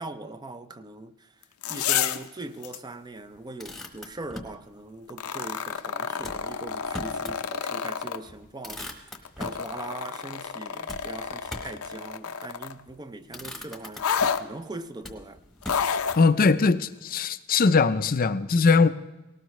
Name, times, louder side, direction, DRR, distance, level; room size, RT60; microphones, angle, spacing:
voice 1, 0.0-1.4 1.7-15.4, right 2 dB, 20° right, 0.5 m, -41 dB
sound 1, 1.4-2.3 2.6-2.8 5.1-8.2 9.1-12.8 14.0-14.4 15.6-16.2 17.2-17.3, left 7 dB, 85° left, 0.7 m, -30 dB
Motor vehicle (road), 3.3-4.6 6.2-7.4 7.8-7.9 8.3-9.7 10.9-11.9 12.7-13.0 13.3-14.5 15.0-16.2, left 1 dB, ahead, 1.1 m, -41 dB
voice 2, 16.2-18.9, left 4 dB, 40° left, 0.5 m, -20 dB
19.0 x 17.5 x 3.1 m
head